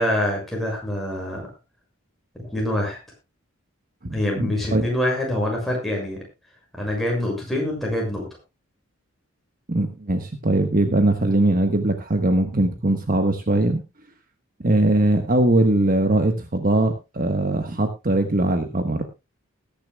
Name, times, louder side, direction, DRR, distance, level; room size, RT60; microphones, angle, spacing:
voice 1, 0.0-1.4 2.4-3.0 4.1-6.2 6.8-8.2, left 1 dB, ahead, -2 dB, 6.4 m, -25 dB
voice 2, 4.0-4.8 9.7-13.8 14.6-19.0, right 1 dB, 40° right, 6 dB, 1.3 m, -21 dB
20.5 x 10.5 x 2.3 m, 0.26 s
head